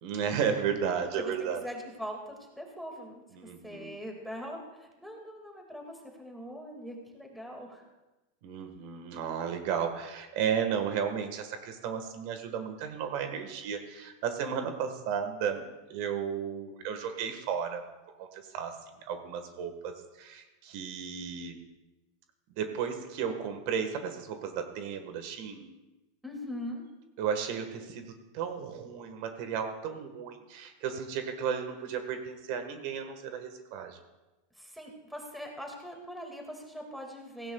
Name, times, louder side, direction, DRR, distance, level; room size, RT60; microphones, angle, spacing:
voice 1, 0.0-1.7 3.3-4.0 8.4-17.8 18.2-21.6 22.6-25.7 27.2-34.0, right 7 dB, 50° right, 6 dB, 1.5 m, -34 dB
voice 2, 1.6-3.2 3.6-7.8 26.2-26.8 34.6-37.5, equal, ahead, 1 dB, 2.1 m, -41 dB
17.0 x 16.5 x 2.4 m, 1.1 s
supercardioid pair, 155°, 0 cm